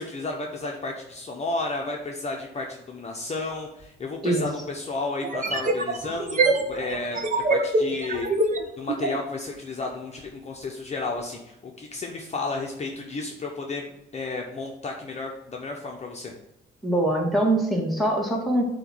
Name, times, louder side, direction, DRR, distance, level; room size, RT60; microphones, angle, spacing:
voice 1, 0.0-7.2 7.5-8.3 8.8-16.3, left 3 dB, 35° left, 0 dB, 1.0 m, -32 dB
sound 1, 3.8-3.9 5.2-9.2, right 3 dB, 40° right, 1.2 m, -25 dB
voice 2, 16.8-18.6, right 1 dB, ahead, -2 dB, 2.1 m, -23 dB
7.6 x 3.1 x 6.2 m, 0.88 s
cardioid pair, 90°, 20 cm